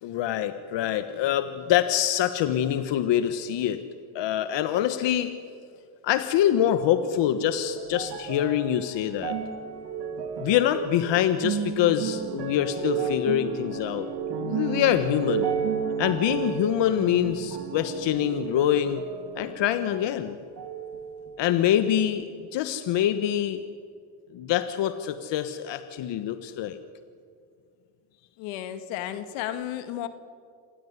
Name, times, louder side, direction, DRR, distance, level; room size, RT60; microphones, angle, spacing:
voice 1, 0.0-3.8 4.1-5.3 6.0-9.3 10.4-15.5 16.0-19.0 19.3-20.4 21.4-23.6 24.3-26.8, left 11 dB, 65° left, 10 dB, 1.4 m, -25 dB
sound 1, 6.8-20.2 20.6-21.5 22.2-22.3, right 7 dB, 55° right, 3.2 m, -33 dB
voice 2, 28.4-30.1, left 12 dB, 85° left, 10 dB, 2.1 m, -33 dB
27.5 x 16.0 x 9.7 m, 2.2 s
supercardioid pair, 80°, 47 cm